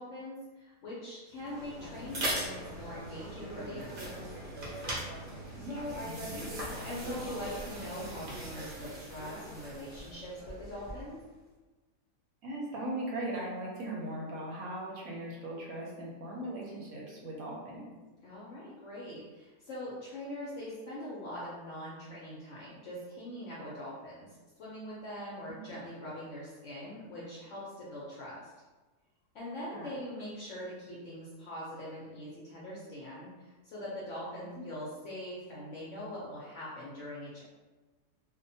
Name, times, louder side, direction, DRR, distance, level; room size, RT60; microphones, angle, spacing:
voice 1, 0.0-4.3 5.7-11.2 18.2-24.3 24.6-28.4 29.3-37.4, left 1 dB, 65° left, -6 dB, 0.8 m, -42 dB
sound 1, 1.3-11.2, right 1 dB, 50° right, 0.6 m, -40 dB
voice 2, 5.5-6.6 12.4-17.9 25.5-25.8 29.7-29.9, right 1 dB, 70° right, -3 dB, 1.0 m, -39 dB
2.6 x 2.1 x 2.6 m, 1.2 s
omnidirectional pair, 1.7 m